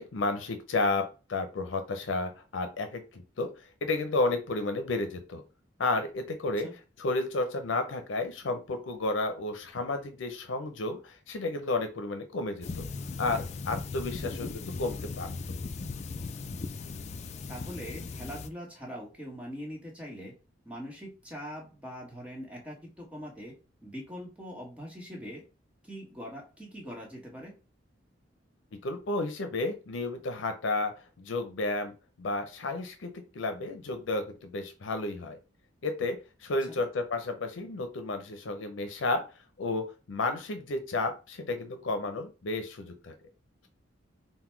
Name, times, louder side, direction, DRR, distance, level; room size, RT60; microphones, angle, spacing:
voice 1, 0.0-5.4 5.8-12.9 13.2-15.6 28.7-31.9 32.2-35.4 35.8-43.1, left 2 dB, 85° left, 7 dB, 0.6 m, -32 dB
sound 1, 12.6-18.5, left 4 dB, 35° left, 0.3 m, -38 dB
voice 2, 17.5-20.3 20.6-23.5 23.8-25.4 25.8-27.6 36.7-36.8, equal, 5° right, -2 dB, 1.2 m, -42 dB
3.9 x 2.2 x 4.4 m, 0.32 s
head